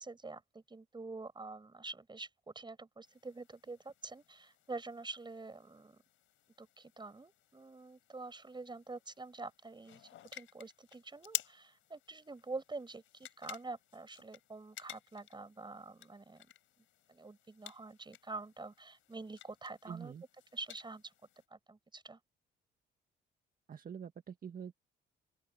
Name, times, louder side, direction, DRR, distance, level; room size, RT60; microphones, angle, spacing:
voice 1, 0.0-6.0 6.6-16.5 17.1-20.1 20.5-21.1 21.5-22.2, right 3 dB, 20° right, 5.7 m, -47 dB
sound 1, 3.0-21.5, left 13 dB, 80° left, 5.3 m, -51 dB
voice 2, 19.9-20.2 23.7-24.7, right 7 dB, 45° right, 1.6 m, -45 dB
open air
cardioid pair, 90°, 20 cm